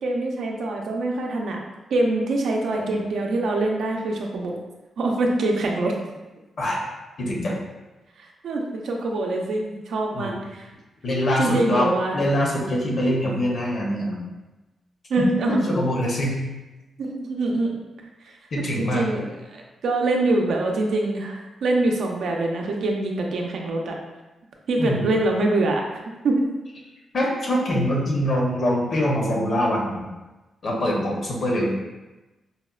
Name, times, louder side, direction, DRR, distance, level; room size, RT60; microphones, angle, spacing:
voice 1, 0.0-1.6 1.9-4.6 5.0-5.9 8.2-10.7 11.4-12.2 15.1-15.6 17.0-17.8 18.2-18.3 18.8-24.0 24.7-25.8 26.2-26.5, right 2 dB, 80° right, 1 dB, 0.5 m, -24 dB
voice 2, 7.2-7.5 10.1-10.4 11.0-11.9 12.1-14.3 15.2-16.4 18.5-19.1 24.8-25.0 27.1-30.1 30.6-31.7, equal, 55° left, -1 dB, 0.7 m, -24 dB
4.1 x 2.0 x 2.3 m, 1.1 s
cardioid pair, 100°, 0 cm